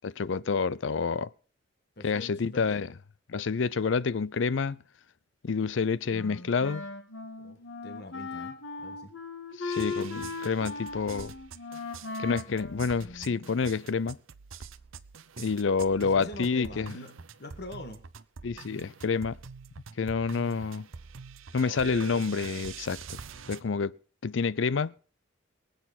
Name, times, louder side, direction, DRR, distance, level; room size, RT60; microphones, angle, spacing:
voice 1, 0.0-1.3 2.0-2.9 3.3-4.8 5.4-6.8 9.6-11.3 12.2-14.2 15.4-16.9 18.4-19.4 20.0-20.9 21.5-23.2 23.5-23.9 24.2-24.9, left 5 dB, 70° left, 0.5 m, -28 dB
voice 2, 2.0-2.8 7.4-9.1 16.0-17.1 17.4-18.0, left 2 dB, 55° left, 1.6 m, -44 dB
Wind instrument woodwind instrument, 6.1-13.6, left 3 dB, 90° left, 2.3 m, -38 dB
sound 1, 9.7-23.6, right 6 dB, 90° right, 0.8 m, -45 dB
24.0 x 8.0 x 4.1 m
head